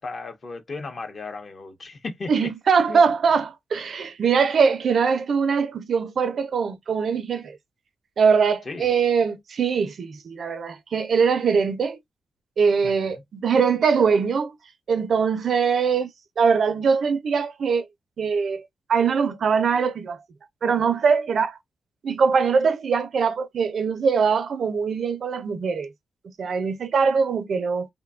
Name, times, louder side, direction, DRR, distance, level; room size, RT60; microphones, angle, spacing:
voice 1, 0.0-2.3 2.9-3.0 8.7-8.9 12.8-12.9, left 3 dB, 45° left, 0.7 m, -35 dB
voice 2, 2.3-7.6 8.2-12.0 12.6-14.5 14.9-17.9 18.2-20.2 20.6-21.6 22.0-25.9 26.4-27.9, right 5 dB, 60° right, 0.4 m, -22 dB
2.6 x 2.1 x 2.3 m
cardioid pair, 105°, 0 cm